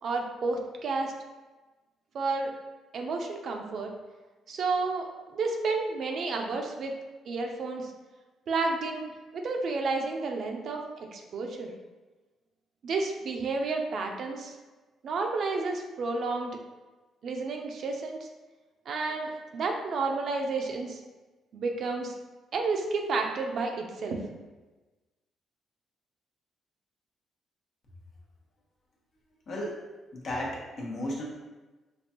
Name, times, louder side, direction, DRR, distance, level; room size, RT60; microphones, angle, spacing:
voice 1, 0.0-1.1 2.1-2.5 2.9-3.9 4.5-6.9 7.3-7.9 8.5-11.7 12.8-14.5 15.0-16.6 17.2-18.3 18.9-21.0 21.5-22.1 22.5-24.3, right 3 dB, 60° right, 2 dB, 0.6 m, -31 dB
voice 2, 29.5-29.8 30.1-31.2, left 1 dB, 55° left, -3 dB, 1.1 m, -34 dB
5.2 x 2.4 x 2.8 m, 1.2 s
cardioid pair, 90°, 0 cm